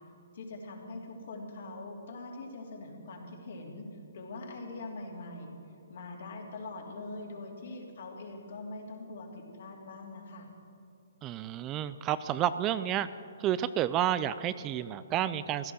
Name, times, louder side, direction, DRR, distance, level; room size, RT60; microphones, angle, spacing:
voice 1, 0.3-3.9 4.1-5.6 5.9-10.5, left 2 dB, 65° left, -1 dB, 3.3 m, -43 dB
voice 2, 11.2-13.1 13.4-15.7, right 11 dB, 25° right, 14 dB, 0.4 m, -30 dB
16.0 x 11.5 x 6.4 m, 2.6 s
hypercardioid pair, 145°, 0 cm